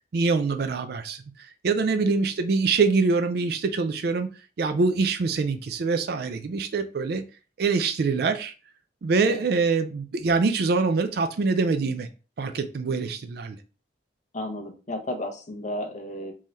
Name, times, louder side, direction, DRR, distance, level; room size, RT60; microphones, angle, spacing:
voice 1, 0.1-4.3 4.6-7.2 7.6-8.5 9.0-12.1 12.4-13.6, right 4 dB, 60° right, 0.4 m, -24 dB
voice 2, 14.3-16.3, left 1 dB, 45° left, 0.8 m, -33 dB
3.7 x 3.1 x 2.6 m
head